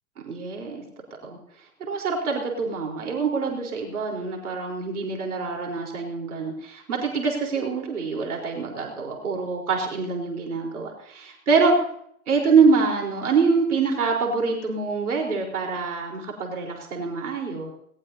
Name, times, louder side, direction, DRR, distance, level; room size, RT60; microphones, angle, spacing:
voice 1, 0.2-0.8 1.2-1.4 1.9-11.8 12.3-17.7, right 4 dB, 80° right, 0 dB, 4.4 m, -25 dB
20.5 x 19.5 x 2.8 m, 0.69 s
hypercardioid pair, 110°, 44 cm